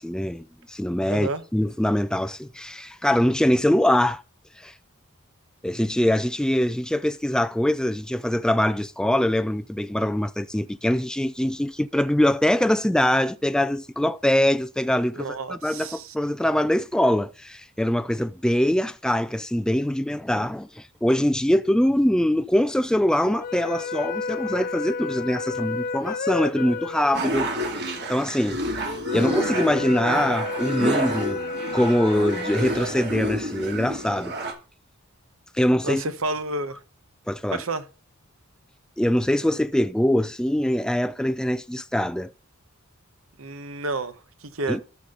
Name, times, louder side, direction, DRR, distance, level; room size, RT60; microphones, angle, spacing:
voice 1, 0.0-4.2 4.6-4.7 5.6-28.7 29.1-31.4 31.7-34.3 35.5-36.0 37.3-37.6 39.0-42.3 44.7-44.8, left 1 dB, 5° left, 0.3 m, -23 dB
voice 2, 1.1-1.4 15.1-16.1 35.8-36.8 37.5-37.8 43.4-44.8, right 2 dB, 70° right, 1.1 m, -30 dB
sound 1, 23.2-33.6, left 4 dB, 45° left, 0.7 m, -32 dB
sound 2, 27.1-34.5, right 1 dB, 55° right, 2.4 m, -29 dB
13.5 x 5.8 x 3.8 m
head